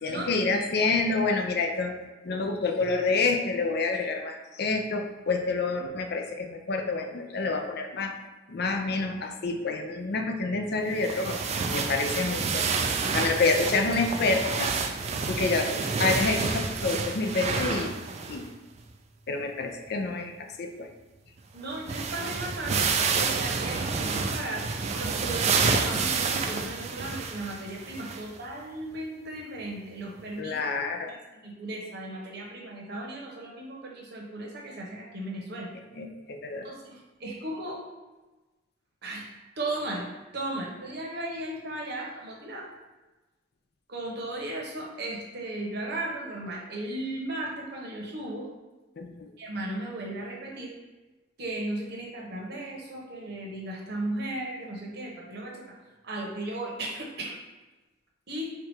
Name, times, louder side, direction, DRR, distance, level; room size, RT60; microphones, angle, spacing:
voice 1, 0.0-2.0 2.2-8.1 8.5-11.4 11.7-12.7 13.1-14.7 15.3-17.9 18.3-18.5 19.3-20.9 30.4-31.1 35.9-36.7 49.0-49.3, left 3 dB, 60° left, 4 dB, 0.5 m, -28 dB
sound 1, 11.0-18.5 18.8-18.9 21.4-21.5 21.7-28.4 28.9-29.0 30.2-30.3, right 4 dB, 35° right, 0.3 m, -29 dB
voice 2, 21.5-22.8 23.2-24.7 24.9-30.6 31.1-31.2 31.4-35.7 36.6-37.8 39.0-39.3 39.6-40.1 40.3-42.7 43.9-48.5 49.4-50.7 51.4-55.7 56.0-57.4 58.3-58.5, right 1 dB, 60° right, -2 dB, 1.0 m, -36 dB
4.6 x 2.4 x 4.5 m, 1.1 s
head